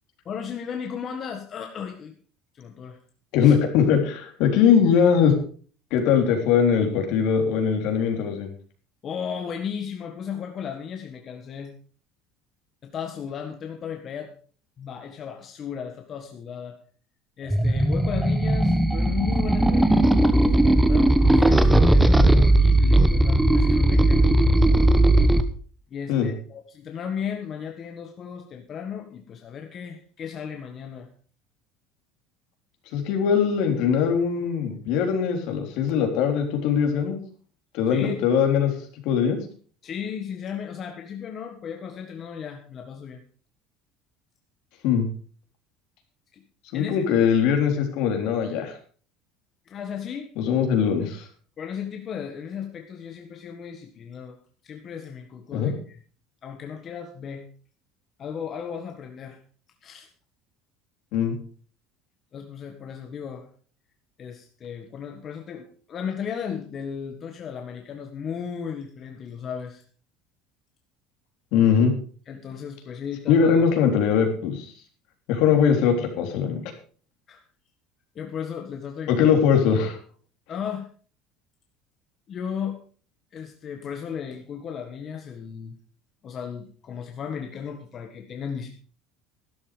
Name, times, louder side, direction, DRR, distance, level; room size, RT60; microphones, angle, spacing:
voice 1, 0.2-2.2 2.5-3.0 3.4-3.5 9.0-11.7 12.8-14.3 14.8-16.8 17.4-24.3 25.9-31.1 37.9-38.2 39.8-43.2 46.3-46.4 46.7-47.0 49.6-50.3 51.6-54.4 54.6-56.0 56.4-57.5 58.2-59.4 59.8-60.1 62.3-63.5 64.2-69.8 72.3-73.6 77.3-77.4 78.1-79.3 80.5-80.9 82.3-82.8 83.3-85.7 86.2-88.7, left 7 dB, 35° left, 3 dB, 1.6 m, -35 dB
voice 2, 3.3-5.4 5.9-8.5 26.1-26.3 32.9-37.2 37.7-39.4 44.8-45.1 46.7-48.8 50.4-51.3 55.5-55.7 61.1-61.4 71.5-71.9 73.3-74.7 75.3-76.6 79.1-80.0, left 7 dB, 70° left, 4 dB, 3.6 m, -21 dB
sound 1, 17.5-25.4, right 1 dB, 5° right, 1.1 m, -18 dB
12.5 x 11.5 x 5.1 m, 0.43 s
cardioid pair, 135°, 0 cm